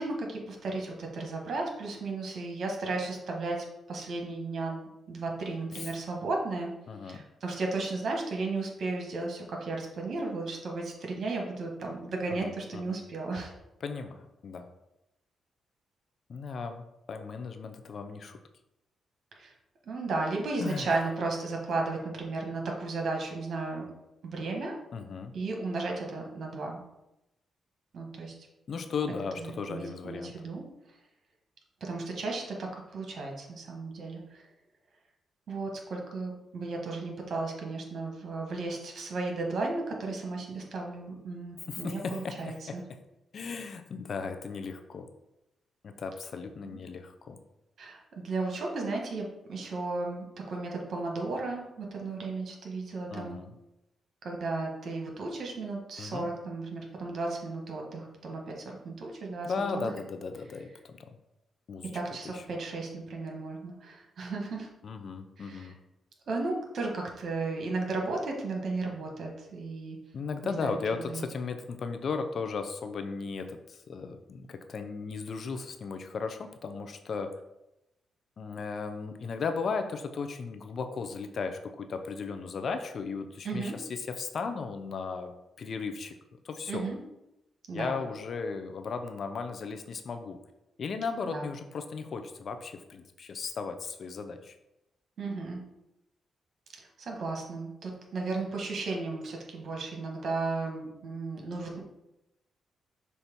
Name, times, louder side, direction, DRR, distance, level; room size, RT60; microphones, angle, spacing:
voice 1, 0.0-6.7 7.0-13.5 19.3-19.5 19.8-23.9 24.2-24.8 25.3-26.8 27.9-28.3 29.4-30.6 31.8-34.4 35.5-42.8 46.6-46.8 47.8-53.4 54.2-59.9 61.9-64.7 65.4-65.7 66.3-70.0 70.4-71.2 83.4-83.8 86.7-87.0 87.7-88.0 91.2-91.5 95.2-95.6 96.7-101.8, right 3 dB, 60° right, 0 dB, 1.6 m, -34 dB
voice 2, 6.9-7.3 12.3-13.0 13.8-14.7 16.3-18.4 20.6-20.9 24.9-25.3 28.7-30.3 41.7-42.8 43.3-45.1 45.8-47.4 53.1-53.5 56.0-56.3 59.4-61.1 61.7-61.9 62.3-62.4 64.8-65.8 70.1-77.3 78.4-85.3 85.6-86.2 86.4-86.9 87.7-90.4 90.8-94.5, left 5 dB, 60° left, 7 dB, 0.7 m, -36 dB
6.4 x 2.8 x 5.3 m, 0.90 s
supercardioid pair, 45°, 0 cm